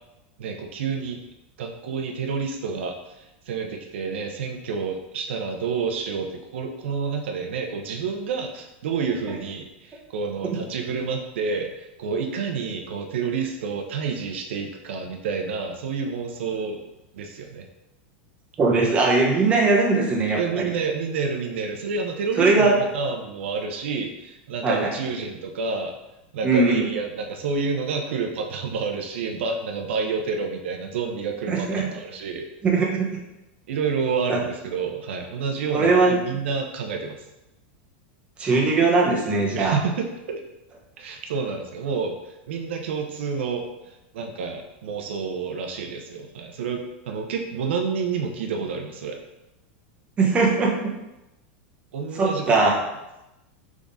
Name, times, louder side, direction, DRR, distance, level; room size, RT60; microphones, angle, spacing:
voice 1, 0.4-1.2 1.6-16.8 17.1-17.7 20.3-25.9 26.3-32.5 33.7-37.2 39.6-40.4 41.0-49.2 51.9-52.8, right 5 dB, 80° right, 3 dB, 0.7 m, -29 dB
voice 2, 18.6-20.7 22.4-22.8 24.6-24.9 26.4-26.9 31.5-31.9 32.6-33.1 34.3-34.4 35.7-36.2 38.4-39.8 50.2-50.9 52.1-52.7, right 3 dB, 20° right, -2 dB, 0.9 m, -20 dB
3.6 x 3.6 x 4.0 m, 0.95 s
supercardioid pair, 145°, 6 cm